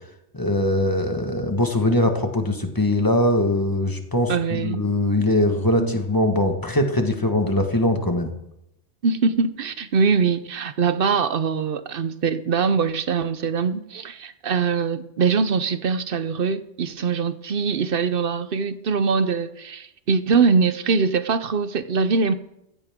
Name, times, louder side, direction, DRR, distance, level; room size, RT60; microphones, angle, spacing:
voice 1, 0.3-8.3, left 1 dB, 20° left, 5 dB, 1.4 m, -21 dB
voice 2, 4.3-4.8 5.8-5.9 9.0-22.3, right 5 dB, 55° right, 13 dB, 0.8 m, -22 dB
15.5 x 14.0 x 3.7 m, 0.83 s
omnidirectional pair, 1.2 m